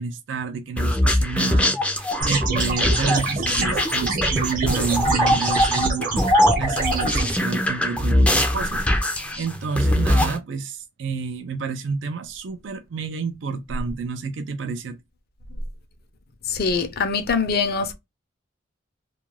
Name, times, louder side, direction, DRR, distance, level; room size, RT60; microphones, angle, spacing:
voice 1, 0.0-15.0, right 5 dB, 70° right, 0.4 m, -30 dB
sound 1, 0.8-10.4, left 1 dB, 5° left, 0.4 m, -22 dB
sound 2, 2.2-7.2, right 3 dB, 45° right, 0.9 m, -25 dB
voice 2, 16.5-17.9, left 5 dB, 55° left, 0.5 m, -23 dB
2.4 x 2.2 x 2.9 m
head